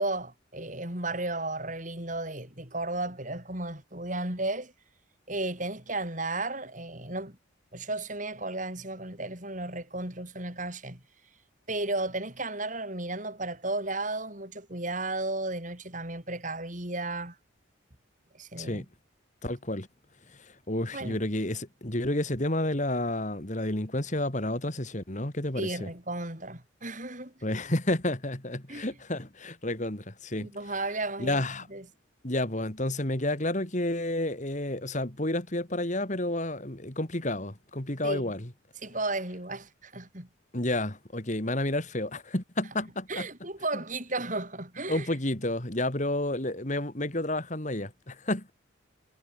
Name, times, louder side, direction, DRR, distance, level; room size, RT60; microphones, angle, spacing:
voice 1, 0.0-4.7 5.3-7.4 7.7-11.0 11.7-17.4 18.3-18.8 20.9-21.2 25.6-27.3 28.7-29.0 30.4-31.4 31.7-31.9 38.0-38.3 38.8-40.3 43.1-45.1, right 2 dB, 40° right, 7.8 m, -34 dB
voice 2, 19.4-19.9 20.7-25.7 27.4-30.5 31.2-31.7 32.2-38.5 40.5-43.2 44.9-48.5, left 1 dB, 40° left, 2.7 m, -30 dB
head